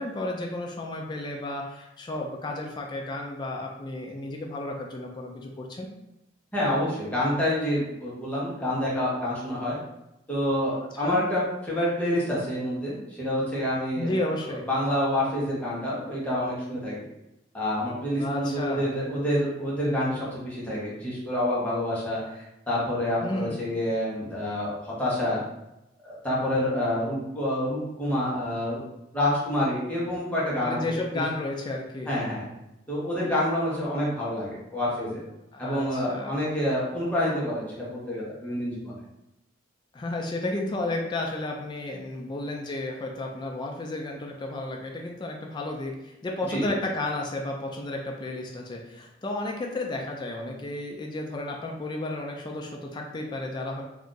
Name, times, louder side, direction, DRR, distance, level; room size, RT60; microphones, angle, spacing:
voice 1, 0.0-5.9 11.0-11.2 14.0-14.7 18.2-18.9 23.2-23.6 30.6-32.1 35.5-36.4 39.9-53.8, left 2 dB, 25° left, 0 dB, 0.3 m, -32 dB
voice 2, 6.5-9.8 10.3-14.1 14.7-17.0 17.5-25.4 26.0-28.8 29.1-30.8 32.1-32.4 32.9-35.2 35.6-39.0 46.5-46.7, left 1 dB, 5° left, -7 dB, 0.9 m, -27 dB
2.6 x 2.4 x 3.7 m, 0.91 s
head